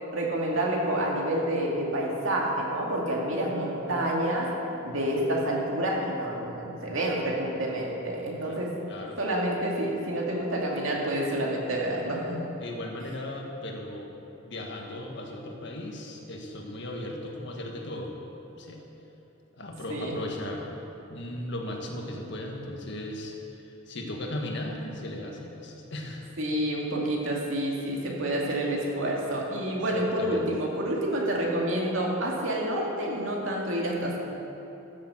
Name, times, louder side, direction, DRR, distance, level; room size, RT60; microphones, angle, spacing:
voice 1, 0.1-4.5 4.8-8.7 9.2-12.4 19.9-20.1 26.4-34.2, right 1 dB, 80° right, -2 dB, 2.3 m, -28 dB
voice 2, 8.9-9.2 12.6-14.1 14.4-18.1 18.5-18.8 19.5-20.8 21.1-26.2 29.9-30.5, left 1 dB, 60° left, 1 dB, 1.7 m, -37 dB
13.5 x 7.3 x 7.5 m, 3.0 s
head